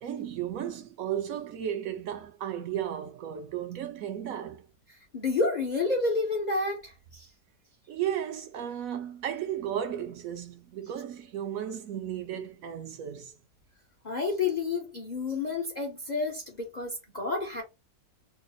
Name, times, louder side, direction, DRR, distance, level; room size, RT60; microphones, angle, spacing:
voice 1, 0.0-4.7 7.9-13.3, right 10 dB, 70° right, 0.9 m, -34 dB
voice 2, 4.9-7.3 14.0-17.6, left 3 dB, 50° left, 0.5 m, -30 dB
3.0 x 2.4 x 3.9 m
omnidirectional pair, 1.8 m